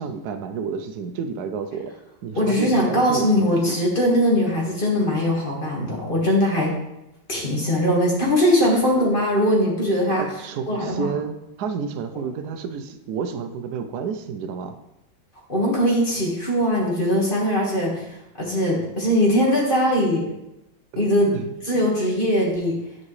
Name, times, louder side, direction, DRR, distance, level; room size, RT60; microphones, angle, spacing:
voice 1, 0.0-1.9 2.2-3.8 8.6-8.9 10.1-14.7 20.9-21.0 21.3-21.5, right 6 dB, 65° right, 6 dB, 1.0 m, -30 dB
voice 2, 2.3-6.7 7.3-10.2 10.7-11.1 15.5-18.1 18.4-20.3 21.0-21.3 21.6-22.7, equal, 30° left, -3 dB, 1.7 m, -21 dB
9.8 x 6.0 x 3.2 m, 0.88 s
omnidirectional pair, 2.1 m